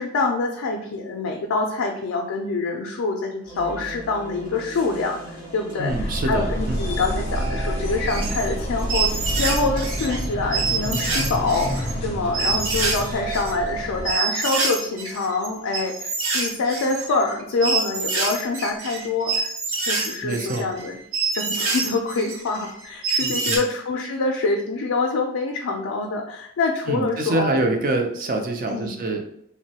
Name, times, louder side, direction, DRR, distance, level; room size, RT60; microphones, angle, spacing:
voice 1, 0.0-5.2 5.5-21.0 21.3-27.7 28.7-29.0, left 3 dB, 85° left, 1 dB, 0.4 m, -26 dB
sound 1, 3.4-15.6, right 3 dB, 25° right, 0.7 m, -38 dB
voice 2, 5.8-6.9 20.2-20.7 23.2-23.6 26.9-29.3, right 2 dB, 40° right, 4 dB, 0.4 m, -25 dB
sound 2, 5.9-14.1, equal, 30° left, 0.4 m, -28 dB
sound 3, 8.1-8.5 8.8-10.2 10.5-11.9 12.3-13.0 13.3-23.6, right 4 dB, 85° right, 0.7 m, -26 dB
3.0 x 2.1 x 2.8 m, 0.73 s
head